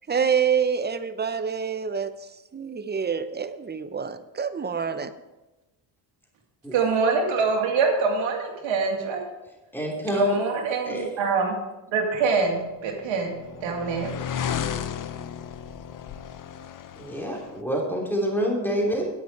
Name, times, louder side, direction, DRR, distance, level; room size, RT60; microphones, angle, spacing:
voice 1, 0.1-2.1 2.5-5.1, right 7 dB, 20° right, 11 dB, 0.7 m, -26 dB
voice 2, 6.7-9.3 10.1-11.6 11.9-14.1 14.4-14.5, right 4 dB, 80° right, 1 dB, 2.4 m, -25 dB
voice 3, 9.7-10.4 10.9-11.1 17.0-19.1, equal, 5° left, -2 dB, 3.1 m, -27 dB
sound 1, 12.7-17.6, left 8 dB, 45° left, 0.7 m, -34 dB
10.0 x 9.3 x 4.7 m, 1.0 s
cardioid pair, 95°, 45 cm